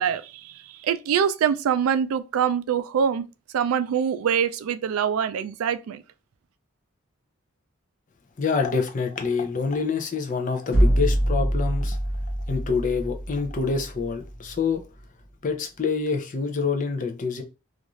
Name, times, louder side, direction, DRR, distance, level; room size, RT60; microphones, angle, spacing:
voice 1, 0.0-3.3 3.5-6.0, right 8 dB, 80° right, 0.3 m, -24 dB
voice 2, 8.4-12.0 12.5-14.8 15.4-17.4, left 5 dB, 35° left, 0.4 m, -26 dB
sound 1, 10.7-14.6, right 1 dB, 70° left, 1.0 m, -25 dB
2.5 x 2.4 x 3.0 m
head